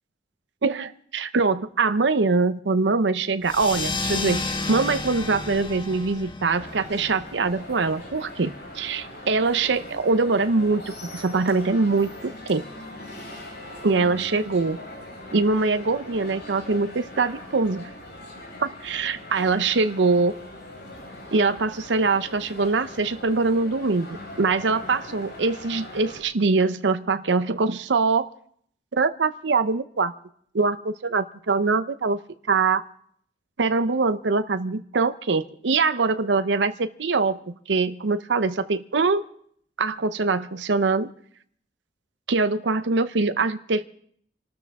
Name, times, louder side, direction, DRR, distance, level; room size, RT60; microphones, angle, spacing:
voice 1, 0.6-4.4 4.7-10.8 11.1-12.6 13.8-14.8 15.3-17.9 18.6-20.3 21.3-24.1 24.4-28.3 28.9-30.1 30.5-32.2 32.5-32.8 33.6-39.2 39.8-41.1 42.3-43.9, right 4 dB, 90° right, 11 dB, 0.7 m, -23 dB
sound 1, 3.4-8.5, left 3 dB, 30° left, 1.5 m, -32 dB
sound 2, 6.5-26.2, left 1 dB, 65° left, 5.2 m, -41 dB
26.5 x 13.0 x 3.6 m, 0.62 s
head